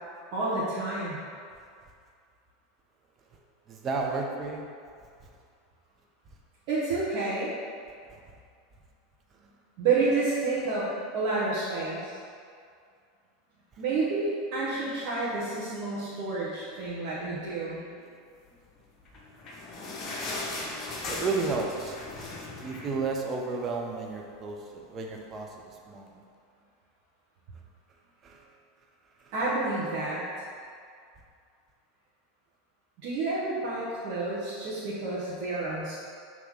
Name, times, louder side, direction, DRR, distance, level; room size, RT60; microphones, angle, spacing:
voice 1, 0.3-1.2 6.7-7.5 9.8-12.1 13.8-18.0 29.3-30.2 33.0-36.0, right 3 dB, 50° right, -9 dB, 1.2 m, -29 dB
voice 2, 3.7-4.7 5.2-5.3 8.1-8.2 21.1-26.2 28.2-28.4 29.2-29.3, right 3 dB, 30° right, 0 dB, 0.8 m, -33 dB
sound 1, 19.0-23.8 24.1-24.2 24.5-24.7 25.3-25.4, left 2 dB, 35° left, 1.0 m, -38 dB
5.7 x 3.1 x 5.6 m, 2.2 s
figure-of-eight pair, 80°, 0 cm